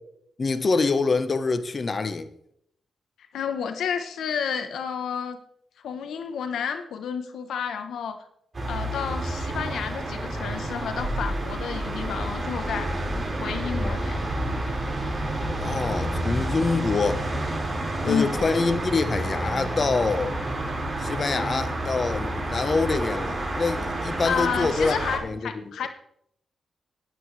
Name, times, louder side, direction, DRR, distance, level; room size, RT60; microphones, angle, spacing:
voice 1, 0.4-2.3 15.6-17.2 18.0-20.4 21.0-25.0 25.2-25.6, left 4 dB, 45° left, 1.1 m, -25 dB
voice 2, 3.3-5.4 5.8-8.2 8.6-12.9 13.4-14.2 18.0-18.4 24.2-25.9, left 7 dB, 80° left, 1.0 m, -30 dB
sound 1, 8.5-25.2, right 1 dB, 35° right, 4.8 m, -29 dB
19.0 x 8.4 x 3.3 m
cardioid pair, 65°, 0 cm